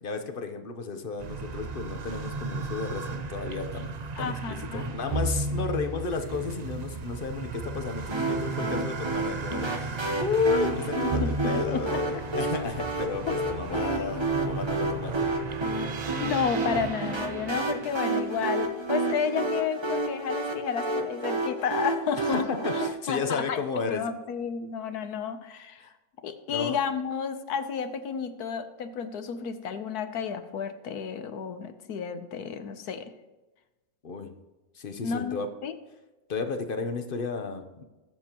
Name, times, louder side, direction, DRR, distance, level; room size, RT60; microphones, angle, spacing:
voice 1, 0.0-15.3 22.1-24.0 25.8-25.9 26.5-26.8 34.0-34.3 34.7-35.5 36.3-37.8, left 4 dB, 40° left, 7 dB, 1.0 m, -33 dB
sound 1, 1.2-19.1, right 3 dB, 85° right, 0.3 m, -35 dB
voice 2, 4.2-4.9 11.0-12.0 13.3-13.4 13.7-14.6 15.8-15.9 16.2-23.6 23.9-25.9 26.2-33.1 35.0-35.7, left 6 dB, 85° left, 9 dB, 1.4 m, -32 dB
sound 2, 8.1-22.9, right 2 dB, 20° right, 0.8 m, -31 dB
20.5 x 7.6 x 3.0 m, 1.1 s
omnidirectional pair, 1.6 m